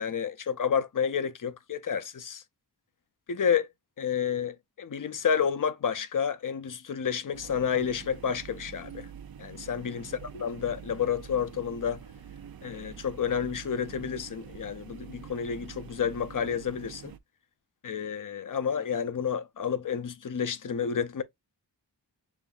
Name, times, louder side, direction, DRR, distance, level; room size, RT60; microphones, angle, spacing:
voice 1, 0.0-2.4 3.3-3.7 4.0-9.1 9.4-12.0 12.6-17.1 17.8-21.2, left 7 dB, 50° left, 0.7 m, -30 dB
sound 1, 7.3-17.2, right 8 dB, 60° right, 0.5 m, -46 dB
7.1 x 2.6 x 2.4 m
wide cardioid pair, 80°, 41 cm